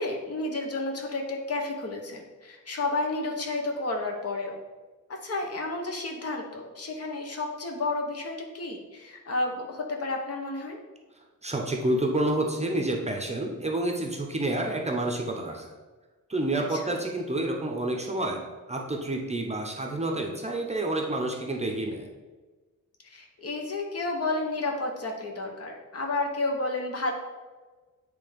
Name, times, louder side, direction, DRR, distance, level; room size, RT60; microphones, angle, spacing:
voice 1, 0.0-4.6 5.1-10.8 16.7-17.0 23.0-27.1, left 2 dB, 50° left, 2 dB, 1.0 m, -31 dB
voice 2, 11.4-15.7 16.3-18.4 18.7-22.1, right 1 dB, 20° right, 1 dB, 0.7 m, -29 dB
8.7 x 3.4 x 5.0 m, 1.3 s
wide cardioid pair, 170°, 32 cm